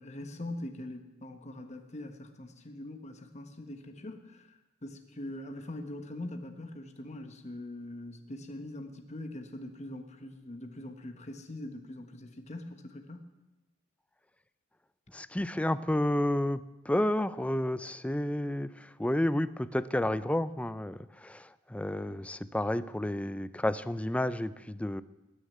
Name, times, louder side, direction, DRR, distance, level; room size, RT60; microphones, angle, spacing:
voice 1, 0.0-13.3, left 1 dB, 35° left, 5 dB, 1.2 m, -42 dB
voice 2, 15.1-25.0, left 1 dB, 5° left, 15 dB, 0.4 m, -31 dB
19.5 x 6.6 x 9.2 m, 1.0 s
head